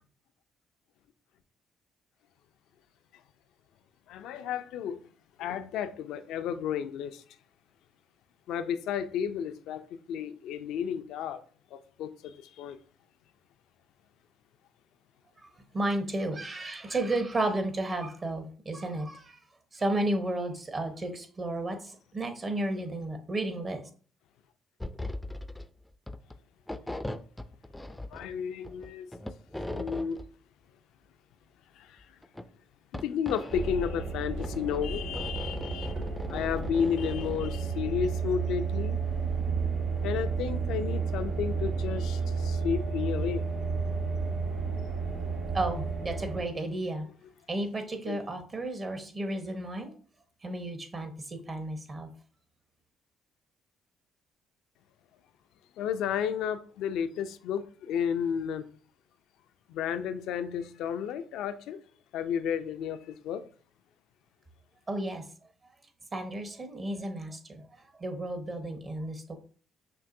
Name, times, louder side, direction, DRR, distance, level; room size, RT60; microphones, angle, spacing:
voice 1, 4.1-5.0 5.4-7.2 8.5-11.4 11.7-12.8 28.1-29.1 29.7-30.2 31.7-32.2 32.9-36.0 36.3-39.0 40.0-43.4 48.1-48.2 55.8-58.6 59.7-61.8 62.1-63.4, left 8 dB, 75° left, 0.3 m, -32 dB
voice 2, 15.4-19.4 19.7-23.8 45.5-47.1 47.5-49.9 50.4-52.1 64.9-65.3 66.1-67.6 68.0-69.3, right 1 dB, 40° right, 1.0 m, -33 dB
sound 1, 24.8-25.6 25.9-26.4 26.7-28.4 28.6-30.3 32.0-32.4 32.9-33.7 34.4-37.5, left 1 dB, 10° left, 0.4 m, -39 dB
sound 2, 33.5-46.4, right 4 dB, 70° right, 1.3 m, -32 dB
5.9 x 2.5 x 2.6 m
hypercardioid pair, 55°, 0 cm